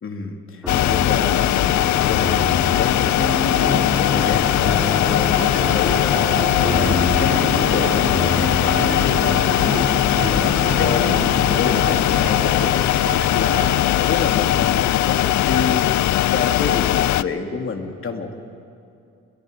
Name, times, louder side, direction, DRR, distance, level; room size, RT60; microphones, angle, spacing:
voice 1, 0.0-9.8 10.3-15.9 16.3-18.4, left 4 dB, 45° left, 3 dB, 2.7 m, -28 dB
sound 1, 0.6-12.7, left 1 dB, 5° right, 3.6 m, -27 dB
sound 2, 0.7-17.2, left 14 dB, 70° left, 0.6 m, -19 dB
sound 3, 5.3-13.7, right 3 dB, 45° right, 5.9 m, -32 dB
29.5 x 22.5 x 5.2 m, 2.5 s
cardioid pair, 90°, 30 cm